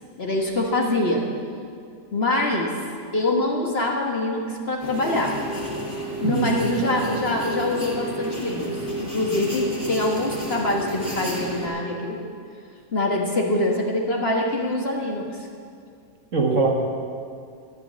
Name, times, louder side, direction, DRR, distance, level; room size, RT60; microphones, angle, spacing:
voice 1, 0.2-1.2 2.1-2.7 3.1-5.3 6.2-8.7 9.0-12.2 12.9-15.3, left 2 dB, 40° left, 0 dB, 1.4 m, -24 dB
sound 1, 4.8-11.7, equal, 5° right, 3.4 m, -31 dB
voice 2, 6.2-6.9 16.3-16.7, right 4 dB, 50° right, 1 dB, 1.7 m, -22 dB
11.5 x 10.5 x 7.5 m, 2.3 s
omnidirectional pair, 1.8 m